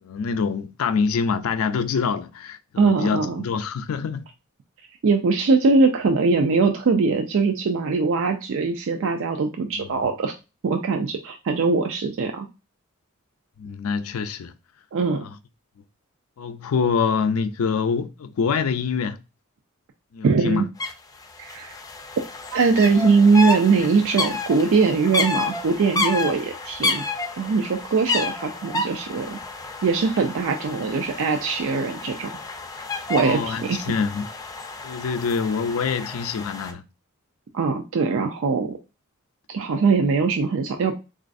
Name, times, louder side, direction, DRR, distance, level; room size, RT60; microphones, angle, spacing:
voice 1, 0.0-4.2 9.8-10.1 13.6-14.5 15.2-15.4 16.4-19.2 20.1-20.6 33.2-34.3 34.8-36.8, left 5 dB, 75° left, 0.4 m, -25 dB
voice 2, 2.8-3.4 5.0-10.3 10.6-12.5 14.9-15.2 20.2-20.7 21.4-21.7 22.5-27.0 27.4-29.4 29.8-32.4 33.1-33.8 37.5-38.8 39.5-40.9, right 4 dB, 65° right, 0.4 m, -21 dB
sound 1, 20.8-20.9 21.2-36.7, left 3 dB, 15° left, 0.4 m, -30 dB
3.9 x 2.4 x 2.5 m
head